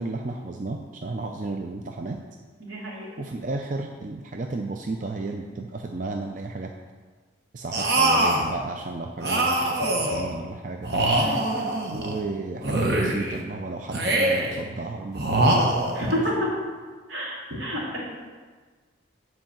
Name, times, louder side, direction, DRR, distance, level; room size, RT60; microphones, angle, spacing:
voice 1, 0.0-2.2 3.2-6.7 7.5-10.9 11.9-15.8 16.2-16.3, right 3 dB, 40° right, 3 dB, 0.4 m, -33 dB
voice 2, 2.6-3.2 11.1-11.7 15.9-16.3 17.1-18.0, equal, 80° right, -5 dB, 2.9 m, -30 dB
sound 1, 7.7-8.5 9.2-10.3 10.8-12.2 12.6-13.4 13.9-14.6 15.1-16.2, right 1 dB, 60° right, 1.1 m, -23 dB
7.8 x 4.7 x 7.3 m, 1.4 s
head